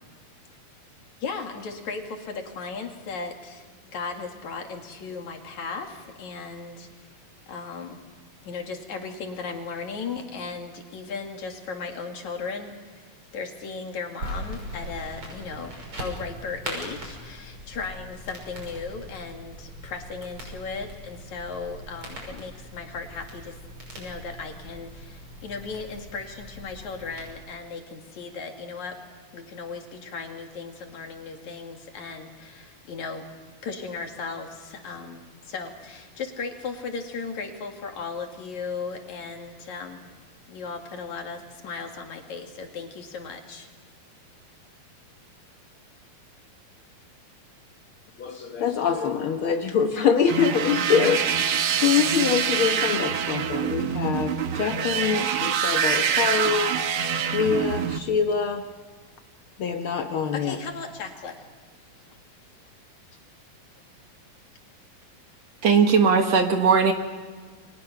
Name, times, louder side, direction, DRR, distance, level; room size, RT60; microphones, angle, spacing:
voice 1, 1.2-6.9 7.5-8.0 8.4-23.6 23.9-29.0 29.3-33.3 33.6-40.0 40.5-43.7 60.2-61.5, left 4 dB, 60° left, 3 dB, 3.5 m, -36 dB
sound 1, 14.2-27.3, equal, 40° right, 6.9 m, -40 dB
voice 2, 48.2-56.7 57.3-58.6 59.6-60.6, left 7 dB, 85° left, 5 dB, 1.1 m, -24 dB
sound 2, 50.3-58.0, right 8 dB, 85° right, 1.1 m, -25 dB
voice 3, 65.6-66.9, right 5 dB, 55° right, 5 dB, 2.4 m, -18 dB
29.5 x 24.0 x 5.8 m, 1.5 s
omnidirectional pair, 3.9 m